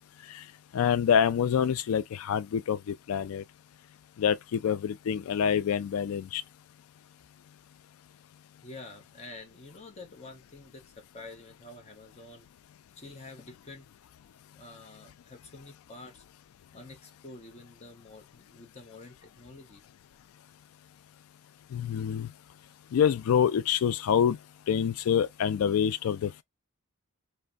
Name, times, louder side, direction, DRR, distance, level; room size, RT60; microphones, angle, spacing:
voice 1, 0.7-3.4 4.2-6.4 21.7-22.3 22.9-24.4 24.7-26.4, left 8 dB, 80° left, 0.3 m, -26 dB
voice 2, 8.6-12.5 13.0-13.9 14.5-16.2 16.7-19.8, left 2 dB, 30° left, 0.7 m, -48 dB
3.2 x 2.1 x 2.4 m
head